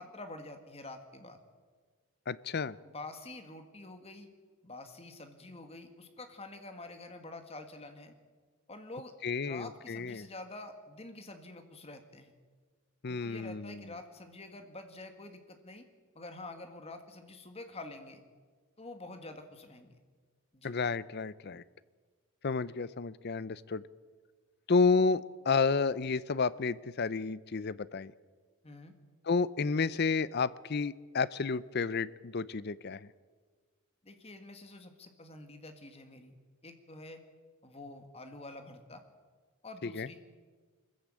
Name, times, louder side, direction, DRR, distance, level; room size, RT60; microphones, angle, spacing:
voice 1, 0.0-1.4 2.8-4.3 4.6-8.1 8.7-9.1 9.4-12.3 13.1-15.9 16.2-18.2 18.8-20.0 20.5-20.7 28.6-29.0 34.0-36.3 36.6-37.2 37.6-39.0 39.6-40.2, left 2 dB, 25° left, 7 dB, 1.8 m, -47 dB
voice 2, 2.3-2.8 9.2-10.3 13.0-13.9 20.6-21.6 22.4-23.8 24.7-28.1 29.2-33.1 39.8-40.1, left 4 dB, 45° left, 18 dB, 0.6 m, -31 dB
23.0 x 14.5 x 8.9 m, 1.5 s
head